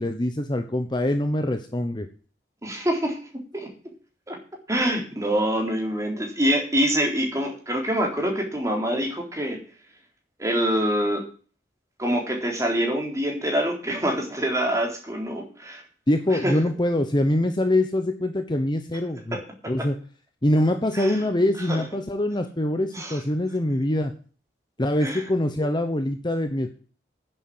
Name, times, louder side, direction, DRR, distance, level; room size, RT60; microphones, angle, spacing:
voice 1, 0.0-2.1 16.1-19.4 19.7-20.0 20.4-24.1 24.8-26.7, left 1 dB, 25° left, 7 dB, 1.0 m, -24 dB
voice 2, 2.6-3.7 4.3-4.4 4.7-9.6 10.4-11.2 12.0-15.8 16.4-16.6 19.3-19.9 20.9-21.2 21.7-21.8 22.9-23.2 25.0-25.2, equal, 20° right, 1 dB, 3.8 m, -25 dB
10.0 x 7.9 x 7.8 m, 0.40 s
head